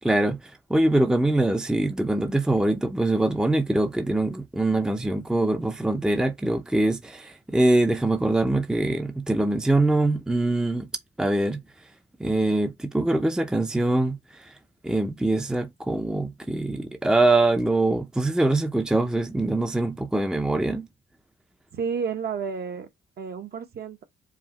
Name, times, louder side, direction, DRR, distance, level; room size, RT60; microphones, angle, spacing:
voice 1, 0.0-10.9 11.2-11.6 12.2-14.6 14.8-20.9, right 2 dB, 5° right, 0.6 m, -23 dB
voice 2, 21.7-22.9 23.2-24.0, right 6 dB, 55° right, 1.0 m, -31 dB
4.8 x 2.5 x 2.9 m
cardioid pair, 90°, 20 cm